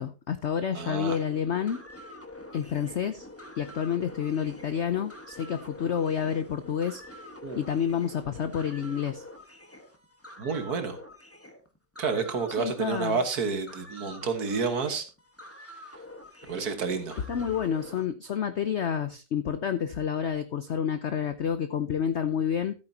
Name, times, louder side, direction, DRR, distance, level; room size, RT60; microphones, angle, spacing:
voice 1, 0.0-1.8 2.5-3.3 3.6-7.0 7.6-9.2 12.6-13.2 17.3-22.7, left 8 dB, 75° left, 11 dB, 0.6 m, -29 dB
voice 2, 0.7-1.2 7.4-7.6 10.4-11.0 12.0-15.1 15.6-15.7 16.5-17.2, right 5 dB, 55° right, 7 dB, 1.8 m, -30 dB
sound 1, 1.0-18.1, left 1 dB, 10° left, 1.0 m, -46 dB
14.0 x 8.8 x 2.8 m, 0.30 s
omnidirectional pair, 2.0 m